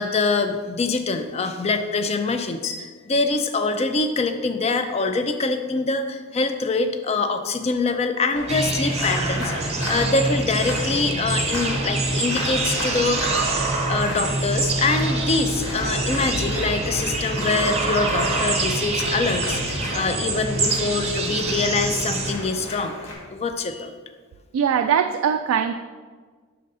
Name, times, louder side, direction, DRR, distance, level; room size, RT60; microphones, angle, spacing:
voice 1, 0.0-13.4 13.9-23.0 23.3-23.9, left 3 dB, 30° left, 8 dB, 0.4 m, -24 dB
sound 1, 2.6-4.7, left 6 dB, 60° left, 0.9 m, -39 dB
sound 2, 8.3-23.1, left 1 dB, 80° left, 1.6 m, -34 dB
sound 3, 8.5-22.3, right 2 dB, 30° right, 0.6 m, -25 dB
voice 2, 24.5-25.7, right 8 dB, 75° right, 6 dB, 0.3 m, -21 dB
5.5 x 3.9 x 5.3 m, 1.5 s
head